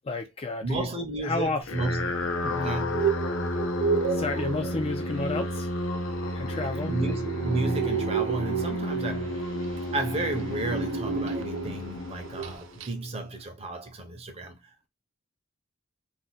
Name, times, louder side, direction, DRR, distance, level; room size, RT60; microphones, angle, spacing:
voice 1, 0.0-0.9 1.2-1.6 2.4-2.7 4.1-5.7 6.3-7.0, left 3 dB, 30° left, 0.3 m, -31 dB
voice 2, 0.6-2.3 2.6-3.0 6.9-9.4 9.9-14.6, right 2 dB, 30° right, 0.7 m, -32 dB
sound 1, 1.6-13.1, left 1 dB, 80° left, 0.6 m, -32 dB
sound 2, 2.7-11.9 12.2-12.5 12.8-12.9, right 6 dB, 75° right, 0.4 m, -32 dB
2.5 x 2.3 x 4.0 m
head